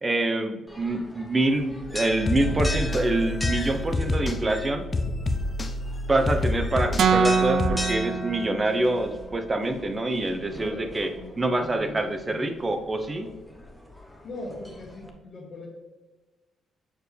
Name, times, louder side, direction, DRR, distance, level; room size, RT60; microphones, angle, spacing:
voice 1, 0.0-4.9 6.1-11.1 11.4-13.3, right 2 dB, 25° right, 7 dB, 0.7 m, -26 dB
sound 1, 0.7-15.1, left 1 dB, 5° left, 1.0 m, -39 dB
sound 2, 1.8-7.7, left 2 dB, 30° left, 0.6 m, -28 dB
sound 3, 7.0-9.1, right 6 dB, 65° right, 0.4 m, -24 dB
voice 2, 10.5-12.5 14.2-15.7, left 1 dB, 50° left, -5 dB, 1.6 m, -40 dB
7.1 x 4.5 x 3.3 m, 1.1 s
cardioid pair, 90°, 0 cm